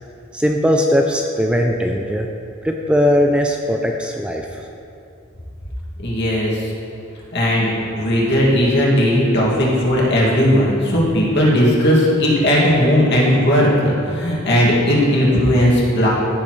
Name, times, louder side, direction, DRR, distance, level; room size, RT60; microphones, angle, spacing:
voice 1, 0.3-2.3 2.6-4.7, equal, 5° right, 2 dB, 0.4 m, -19 dB
voice 2, 6.0-6.7 7.3-16.1, equal, 60° left, -5 dB, 2.3 m, -16 dB
15.0 x 6.8 x 3.2 m, 2.6 s
head